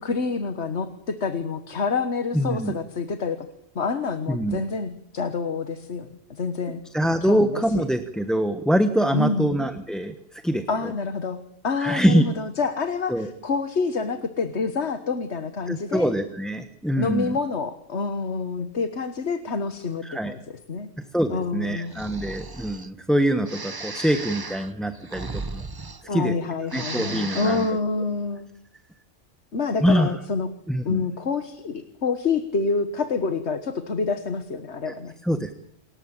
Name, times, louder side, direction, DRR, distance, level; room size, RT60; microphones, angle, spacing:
voice 1, 0.0-3.5 3.7-7.8 9.1-9.5 10.7-16.1 17.0-20.4 20.7-20.9 21.3-21.9 26.1-28.5 29.5-30.5 30.8-35.1, left 4 dB, 65° left, 10 dB, 1.7 m, -27 dB
voice 2, 2.3-2.8 4.3-4.6 6.6-10.9 11.8-12.3 13.1-13.3 15.7-17.4 20.0-20.3 21.1-25.7 26.1-26.3 26.7-27.7 29.8-30.2 30.7-31.0 34.9-35.0 35.2-35.5, equal, ahead, 9 dB, 1.1 m, -24 dB
Breathing, 21.9-22.9 23.5-26.4 26.6-27.8, right 3 dB, 20° right, 0.8 m, -36 dB
28.5 x 14.5 x 8.9 m, 0.73 s
omnidirectional pair, 1.2 m